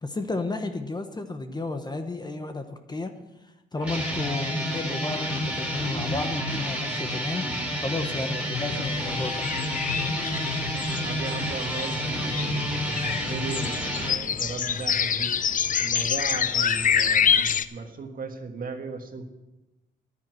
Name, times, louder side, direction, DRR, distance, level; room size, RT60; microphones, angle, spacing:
voice 1, 0.0-3.1 3.7-7.5 7.8-9.4, left 2 dB, 20° left, 7 dB, 1.0 m, -32 dB
sound 1, 3.8-14.2, equal, 5° right, 3.2 m, -30 dB
sound 2, 8.8-17.6, left 7 dB, 40° left, 0.6 m, -27 dB
voice 2, 11.0-15.3 15.8-19.3, right 4 dB, 45° right, 5 dB, 1.7 m, -37 dB
10.5 x 9.5 x 6.3 m, 1.0 s
cardioid pair, 90°, 20 cm